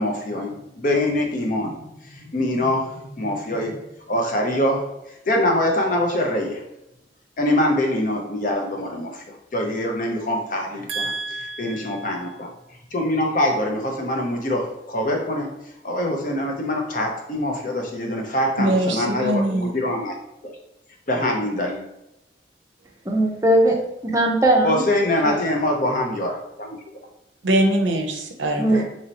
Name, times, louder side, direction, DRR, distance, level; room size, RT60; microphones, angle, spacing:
voice 1, 0.0-3.7 4.1-4.8 5.3-6.6 7.4-11.1 11.4-12.5 12.9-15.5 15.8-20.1 20.4-20.5 21.1-21.8 24.6-26.8 28.7-28.8, left 1 dB, 45° left, 1 dB, 0.7 m, -24 dB
voice 2, 10.9-12.2 18.6-19.7 27.4-28.8, right 1 dB, 80° right, 4 dB, 0.6 m, -23 dB
voice 3, 23.1-23.8 24.0-24.8 25.2-25.4 28.6-28.8, right 1 dB, 15° right, 0 dB, 0.5 m, -19 dB
3.0 x 2.9 x 4.0 m, 0.88 s
head